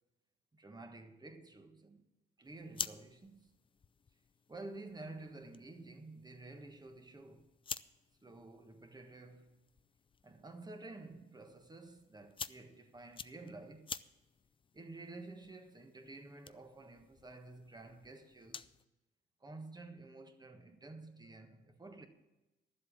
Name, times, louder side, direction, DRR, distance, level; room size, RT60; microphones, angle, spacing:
voice 1, 0.5-2.0 2.4-3.5 4.5-7.5 8.2-9.5 10.2-13.9 14.7-18.7 19.4-22.1, right 2 dB, 20° right, 1.4 m, -51 dB
sound 1, 2.4-18.9, left 6 dB, 25° left, 0.4 m, -50 dB
12.0 x 7.8 x 7.3 m
cardioid pair, 90°, 20 cm